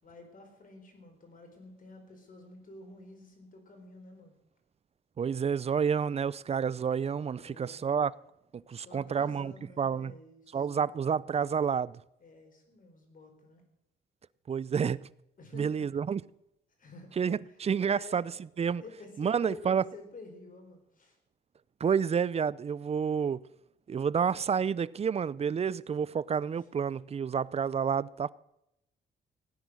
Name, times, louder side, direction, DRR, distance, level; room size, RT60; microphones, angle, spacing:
voice 1, 0.0-4.3 7.4-7.9 8.7-10.7 12.2-13.6 15.4-15.9 16.8-17.2 17.4-18.2 18.8-21.2 26.6-26.7, left 2 dB, 45° left, 4.5 m, -50 dB
voice 2, 5.2-8.1 8.5-10.1 10.5-12.0 14.5-15.1 15.5-16.2 17.2-18.3 18.6-18.8 19.2-19.8 21.8-23.4 23.9-28.3, right 7 dB, 30° right, 0.5 m, -29 dB
17.0 x 9.7 x 6.3 m
cardioid pair, 90°, 20 cm